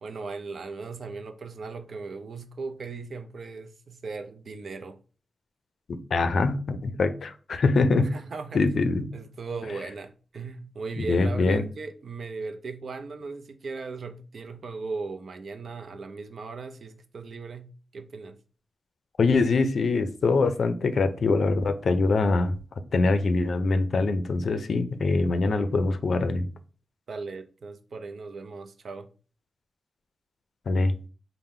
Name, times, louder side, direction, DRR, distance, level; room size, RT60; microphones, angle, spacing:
voice 1, 0.0-5.0 8.0-8.6 9.1-18.4 27.1-29.1, right 4 dB, 65° right, 0.5 m, -37 dB
voice 2, 5.9-8.1 8.5-9.1 11.0-11.6 19.2-22.6 22.9-26.5 30.7-30.9, left 3 dB, 70° left, 0.4 m, -23 dB
3.6 x 2.1 x 4.2 m
cardioid pair, 65°, 0 cm